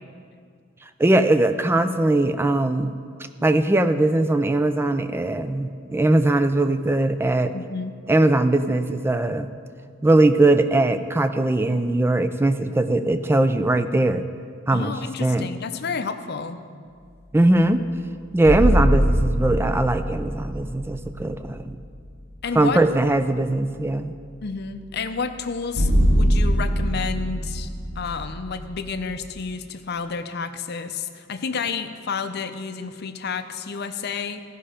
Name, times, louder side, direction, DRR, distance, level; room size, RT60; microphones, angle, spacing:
voice 1, 1.0-2.9 3.4-7.5 8.1-9.5 10.0-14.3 14.7-14.9 15.2-15.5 17.3-17.8 18.3-21.8 22.5-24.1, right 2 dB, 10° right, 10 dB, 0.3 m, -20 dB
voice 2, 7.5-7.9 14.7-16.6 22.4-22.8 24.4-27.7 28.0-34.4, left 5 dB, 50° left, 9 dB, 0.6 m, -30 dB
sound 1, 18.3-21.9 22.3-22.4 25.7-29.3, equal, 85° right, 2.7 m, -23 dB
15.5 x 5.5 x 5.0 m, 2.1 s
head